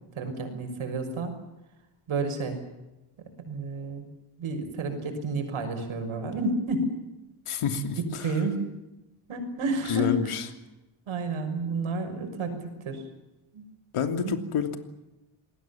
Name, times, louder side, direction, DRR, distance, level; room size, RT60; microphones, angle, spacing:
voice 1, 0.2-1.4 2.1-2.6 3.4-4.1 4.4-6.9 7.9-8.7 9.3-10.1 11.1-13.0 13.5-13.6 14.2-14.3, right 3 dB, 70° right, 6 dB, 6.3 m, -30 dB
voice 2, 7.5-8.3 9.9-10.4 13.9-14.8, left 7 dB, 80° left, 7 dB, 3.1 m, -28 dB
28.0 x 20.5 x 7.3 m, 0.99 s
wide cardioid pair, 160°, 50 cm